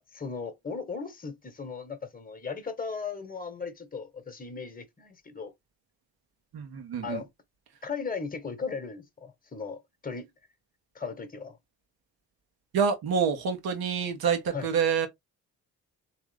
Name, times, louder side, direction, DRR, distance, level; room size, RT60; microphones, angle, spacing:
voice 1, 0.0-5.5 7.0-7.3 7.8-10.3 10.9-11.6 14.5-14.7, left 5 dB, 20° left, 1.3 m, -37 dB
voice 2, 6.5-7.2 12.7-15.1, right 6 dB, 65° right, 1.4 m, -27 dB
3.6 x 3.1 x 3.4 m
hypercardioid pair, 45°, 39 cm